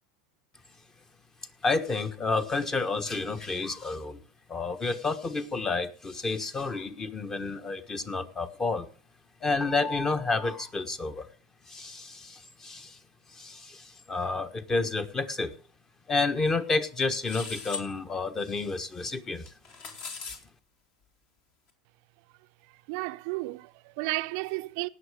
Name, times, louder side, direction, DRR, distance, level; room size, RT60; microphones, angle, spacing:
voice 1, 1.6-4.2 4.5-8.9 9.4-11.3 11.7-13.0 13.3-15.5 16.1-19.5, left 3 dB, 20° left, 1.3 m, -30 dB
sound 1, 17.2-17.9 19.5-20.4, left 5 dB, 50° left, 2.8 m, -38 dB
voice 2, 22.9-24.9, right 23 dB, 60° right, 0.6 m, -33 dB
18.0 x 6.6 x 4.9 m
hypercardioid pair, 95°, 3 cm